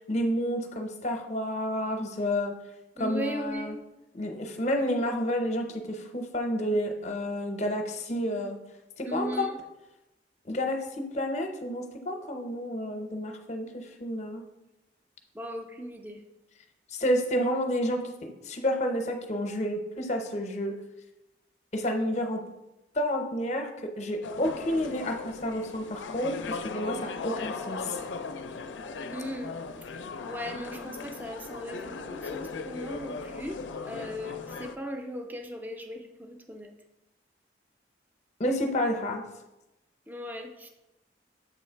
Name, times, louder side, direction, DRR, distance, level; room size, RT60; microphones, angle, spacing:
voice 1, 0.1-2.5 3.0-3.8 4.1-8.6 9.0-9.5 10.5-14.4 16.9-20.8 21.7-22.4 22.9-23.7 24.0-28.0 38.4-39.2, equal, 40° left, 4 dB, 0.6 m, -30 dB
voice 2, 3.0-3.8 9.0-9.5 15.4-16.2 29.1-29.5 30.2-32.1 32.3-33.6 33.8-36.7 40.1-40.7, equal, 10° right, 4 dB, 0.5 m, -37 dB
sound 1, 24.2-34.8, left 4 dB, 90° left, 0.4 m, -38 dB
7.1 x 3.1 x 4.4 m, 0.95 s
head